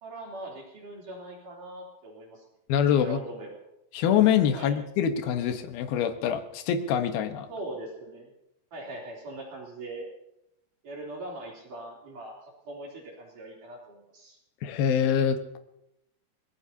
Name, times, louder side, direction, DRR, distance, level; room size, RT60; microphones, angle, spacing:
voice 1, 0.0-2.4 3.0-3.5 4.5-4.7 7.5-8.3 8.7-10.1 10.8-12.4 12.7-14.4, right 1 dB, 55° right, -3 dB, 4.7 m, -41 dB
voice 2, 2.7-3.2 3.9-7.5 14.6-15.6, left 8 dB, 70° left, 7 dB, 2.9 m, -25 dB
25.0 x 20.5 x 2.8 m, 0.82 s
omnidirectional pair, 4.6 m